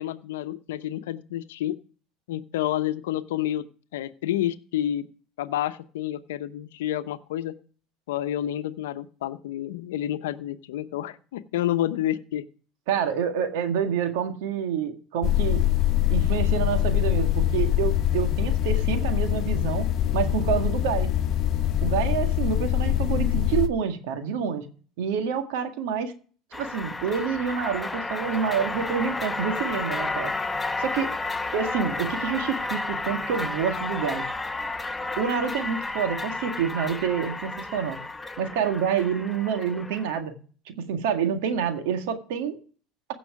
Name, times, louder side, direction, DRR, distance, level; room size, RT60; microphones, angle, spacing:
voice 1, 0.0-1.8 2.3-3.7 3.9-5.1 5.4-7.6 8.1-12.4, left 12 dB, 90° left, 0.8 m, -29 dB
voice 2, 12.9-15.6 16.1-21.2 21.8-24.7 25.0-26.1 26.6-30.3 30.8-31.1 31.5-34.3 35.2-38.0 38.4-40.4 40.7-42.6, right 7 dB, 80° right, 1.8 m, -27 dB
sound 1, 15.2-23.7, left 13 dB, 50° left, 1.0 m, -24 dB
sound 2, 26.5-40.2, left 3 dB, 10° left, 0.9 m, -32 dB
16.0 x 6.1 x 4.8 m
supercardioid pair, 95°, 0 cm